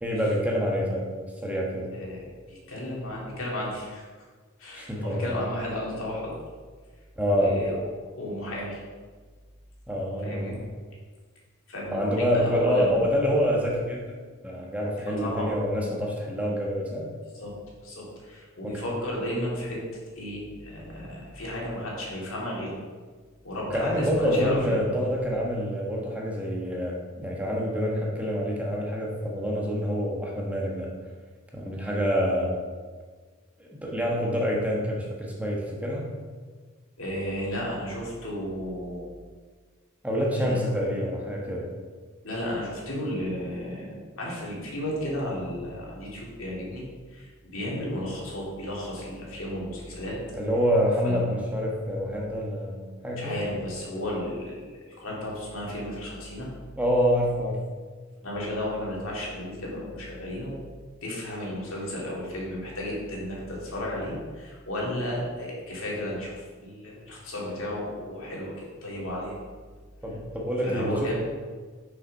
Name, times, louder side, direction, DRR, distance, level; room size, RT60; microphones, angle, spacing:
voice 1, 0.0-1.1 1.4-1.9 4.7-5.3 7.2-7.6 9.9-10.6 11.9-14.1 14.4-17.1 18.6-18.8 23.7-30.9 31.5-32.6 33.6-36.1 40.0-41.7 50.3-53.4 56.8-57.6 70.0-71.1, equal, 5° right, -2 dB, 1.2 m, -27 dB
voice 2, 1.9-4.1 4.6-6.3 7.3-7.7 8.2-8.8 10.2-10.6 11.7-13.1 15.1-15.5 17.3-17.5 17.8-19.8 20.2-22.8 23.4-25.1 37.0-39.1 40.4-40.6 42.2-46.8 47.1-50.2 51.0-51.4 53.2-56.5 58.2-60.6 61.0-68.5 68.8-69.4 70.6-71.1, left 1 dB, 70° left, -4 dB, 2.6 m, -33 dB
6.6 x 5.8 x 5.5 m, 1.5 s
head